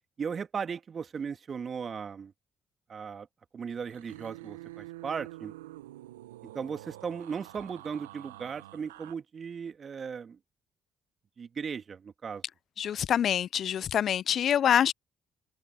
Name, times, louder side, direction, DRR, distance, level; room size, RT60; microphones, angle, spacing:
voice 1, 0.2-2.3 2.9-3.3 3.5-5.5 6.5-10.4 11.4-12.4, right 6 dB, 45° right, 2.5 m, -37 dB
sound 1, 3.7-9.1, right 17 dB, 85° right, 1.0 m, -47 dB
voice 2, 12.8-14.9, left 9 dB, 55° left, 0.5 m, -25 dB
hypercardioid pair, 45°, 0 cm